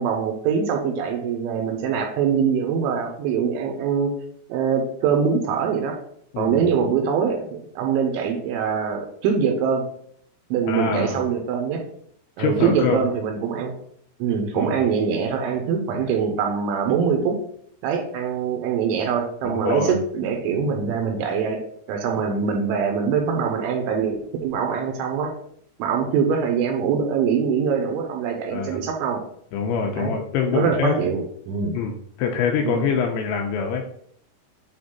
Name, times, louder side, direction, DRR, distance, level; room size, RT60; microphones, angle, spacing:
voice 1, 0.0-4.1 4.5-6.0 6.4-9.8 10.5-11.8 12.4-13.7 14.2-17.3 17.8-21.6 21.9-25.3 25.8-29.2 30.0-30.2 30.5-31.8 32.6-32.9, right 6 dB, 80° right, 3 dB, 3.2 m, -23 dB
voice 2, 10.7-11.2 12.4-13.0 14.6-14.8 19.4-20.0 28.5-28.8 29.5-30.9 31.7-31.9 32.2-33.8, left 6 dB, 85° left, 2 dB, 2.7 m, -24 dB
8.7 x 3.5 x 3.9 m, 0.65 s
omnidirectional pair, 5.7 m